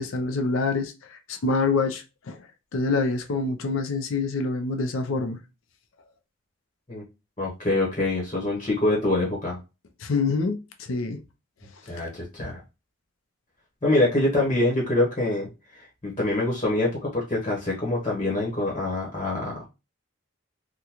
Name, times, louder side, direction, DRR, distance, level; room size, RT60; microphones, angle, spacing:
voice 1, 0.0-2.5 2.7-5.4 10.0-11.2 12.0-12.1, left 3 dB, 80° left, 0.5 m, -26 dB
voice 2, 7.4-9.6 11.8-12.6 13.8-19.6, left 2 dB, 25° left, 1.1 m, -25 dB
3.6 x 2.2 x 2.9 m
head